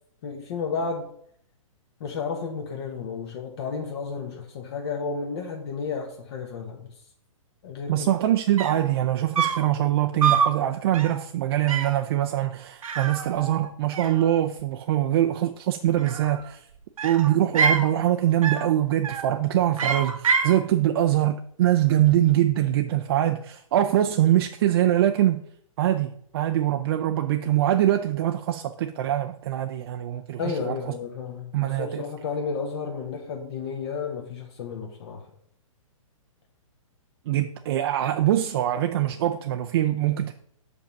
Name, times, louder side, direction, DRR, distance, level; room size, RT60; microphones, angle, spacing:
voice 1, 0.2-1.1 2.0-6.9 7.6-8.1 30.4-35.3, left 5 dB, 50° left, 1.1 m, -32 dB
voice 2, 7.9-16.7 17.0-25.4 25.8-30.7 31.5-32.0 37.3-40.3, right 12 dB, 45° right, 0.5 m, -23 dB
sound 1, 8.3-8.4 8.6-8.9 9.4-9.7 10.2-10.6 10.9-11.2 11.7-12.0 12.8-13.7 13.9-14.6 15.9-16.5 17.0-17.9 18.4-18.7 19.0-19.4 19.8-20.6, right 5 dB, 80° right, 1.0 m, -26 dB
6.3 x 5.3 x 5.3 m
hypercardioid pair, 140°, 18 cm